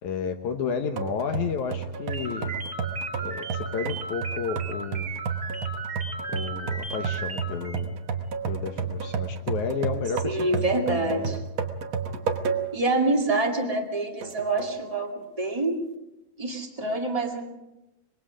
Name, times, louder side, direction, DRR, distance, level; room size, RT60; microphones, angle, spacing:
voice 1, 0.0-2.5 3.2-5.1 6.3-8.0 8.5-11.4, left 6 dB, 65° left, 6 dB, 2.1 m, -32 dB
sound 1, 1.0-12.9 13.3-13.4 14.2-14.8, right 5 dB, 85° right, 1.1 m, -32 dB
sound 2, 2.1-7.8, right 4 dB, 40° right, 1.2 m, -36 dB
voice 2, 10.2-11.4 12.7-15.8 16.4-17.5, right 2 dB, 15° right, 2 dB, 1.1 m, -26 dB
25.5 x 21.5 x 5.1 m, 0.95 s
omnidirectional pair, 4.4 m